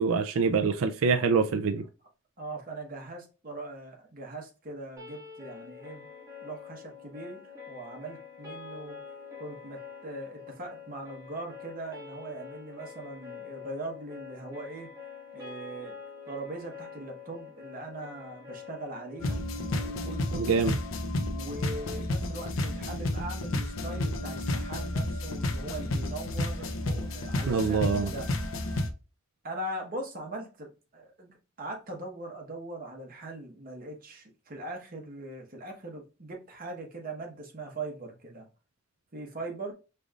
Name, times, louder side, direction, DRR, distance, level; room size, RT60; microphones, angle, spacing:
voice 1, 0.0-1.8 20.3-20.8 27.5-28.1, right 5 dB, 80° right, 0.4 m, -25 dB
voice 2, 1.2-1.7 2.4-6.1 6.4-9.0 9.4-14.9 15.3-16.0 16.2-19.4 19.7-20.7 21.3-28.3 29.4-38.5 39.1-39.7, right 2 dB, 45° right, 1.2 m, -41 dB
sound 1, 5.0-21.0, left 6 dB, 15° right, 2.1 m, -46 dB
sound 2, 19.2-28.9, left 1 dB, 70° left, 0.6 m, -31 dB
5.0 x 3.4 x 2.4 m
head